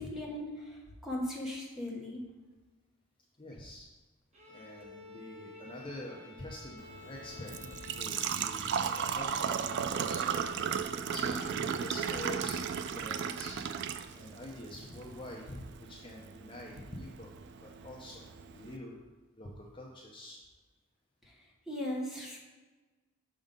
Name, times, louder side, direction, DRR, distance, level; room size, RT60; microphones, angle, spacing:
voice 1, 0.0-2.3 21.7-22.4, left 1 dB, ahead, -3 dB, 1.1 m, -38 dB
voice 2, 3.4-3.9 4.5-10.3 11.1-13.6 14.1-17.3 17.6-18.3 18.5-19.0 19.4-20.4, left 1 dB, 25° left, -2 dB, 0.6 m, -46 dB
Bowed string instrument, 4.3-10.7, left 4 dB, 35° right, 1.0 m, -51 dB
Engine / Trickle dribble / Fill (with liquid), 6.8-18.8, right 7 dB, 55° right, 0.3 m, -36 dB
6.2 x 3.8 x 5.2 m, 1.2 s
head